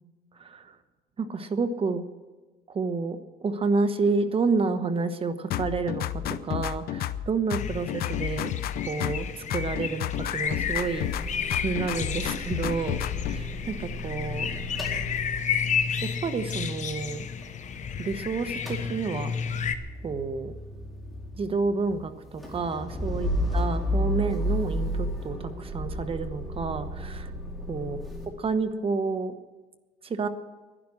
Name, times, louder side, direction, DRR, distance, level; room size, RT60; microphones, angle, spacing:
voice 1, 0.4-0.8 1.2-2.0 2.7-3.2 3.4-8.5 8.9-11.4 11.6-14.5 16.2-17.2 18.0-19.3 20.0-20.5 21.3-27.3 27.7-28.0 28.4-29.3 30.0-30.3, right 4 dB, 35° right, 10 dB, 1.1 m, -29 dB
sound 1, 5.5-7.3 7.5-9.3 9.5-11.3 11.5-13.4, left 11 dB, 65° left, 0.7 m, -31 dB
sound 2, 7.6-19.7, left 7 dB, 45° left, 1.0 m, -32 dB
Motor vehicle (road) / Engine starting / Idling, 10.4-18.2 18.4-28.3, equal, ahead, 4.3 m, -34 dB
11.0 x 11.0 x 9.8 m, 1.3 s
cardioid pair, 110°, 17 cm